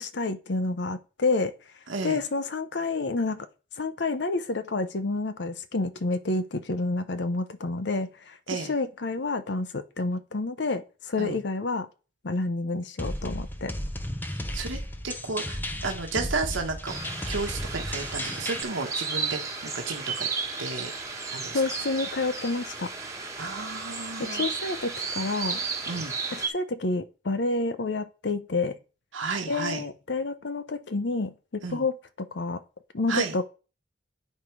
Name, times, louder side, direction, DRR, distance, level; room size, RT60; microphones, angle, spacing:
voice 1, 0.0-1.5 2.0-3.5 3.8-11.9 12.2-13.7 21.5-22.9 24.2-25.6 26.3-28.8 29.5-32.6 32.9-33.4, left 3 dB, 65° left, 0.8 m, -29 dB
voice 2, 1.9-2.2 8.5-8.7 11.2-11.4 14.3-14.8 15.0-16.9 17.3-20.3 20.6-20.9 21.3-21.6 23.4-24.5 25.9-26.1 29.1-29.8 31.6-31.8 33.1-33.3, right 4 dB, 90° right, 1.3 m, -32 dB
sound 1, 13.0-18.6, left 1 dB, 10° left, 0.6 m, -34 dB
sound 2, 16.9-26.5, right 4 dB, 15° right, 1.5 m, -34 dB
8.6 x 5.5 x 4.6 m
head